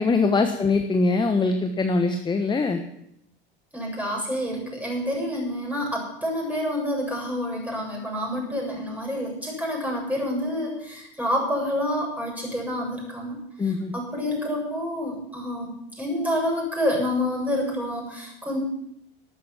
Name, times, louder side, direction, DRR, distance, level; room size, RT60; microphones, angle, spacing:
voice 1, 0.0-2.8 13.6-13.9, left 3 dB, 15° left, 7 dB, 1.3 m, -22 dB
voice 2, 3.7-18.6, left 1 dB, 5° right, 0 dB, 7.6 m, -28 dB
12.5 x 12.5 x 7.5 m, 0.75 s
figure-of-eight pair, 75°, 29 cm